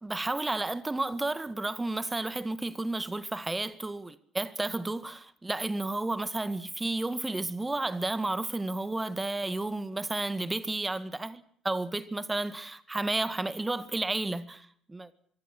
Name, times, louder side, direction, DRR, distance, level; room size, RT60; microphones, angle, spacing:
voice 1, 0.0-15.1, right 2 dB, 15° right, 1.8 m, -32 dB
24.5 x 24.0 x 6.2 m
figure-of-eight pair, 55°, 0 cm